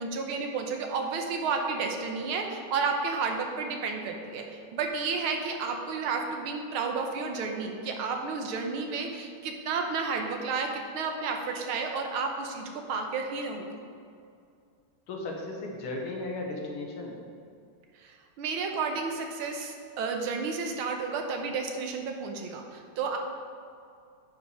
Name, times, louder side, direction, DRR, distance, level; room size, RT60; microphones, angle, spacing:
voice 1, 0.0-13.7 18.0-23.2, right 4 dB, 80° right, 3 dB, 1.7 m, -32 dB
voice 2, 15.1-17.2, left 2 dB, 90° left, 0 dB, 2.1 m, -35 dB
9.5 x 5.3 x 4.9 m, 2.4 s
omnidirectional pair, 2.3 m